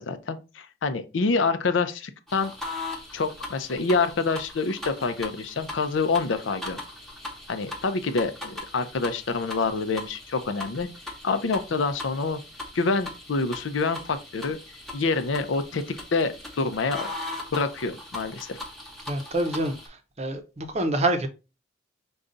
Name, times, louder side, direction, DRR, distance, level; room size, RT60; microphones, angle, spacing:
voice 1, 0.0-2.5 3.1-6.8 7.5-10.9 11.2-12.4 12.7-14.6 14.9-15.8 16.1-17.1 17.5-18.6, left 4 dB, 75° left, 0.5 m, -27 dB
sound 1, 2.3-19.9, left 2 dB, ahead, 1.0 m, -39 dB
voice 2, 19.1-21.3, right 2 dB, 35° right, 0.7 m, -27 dB
5.1 x 2.3 x 3.8 m
head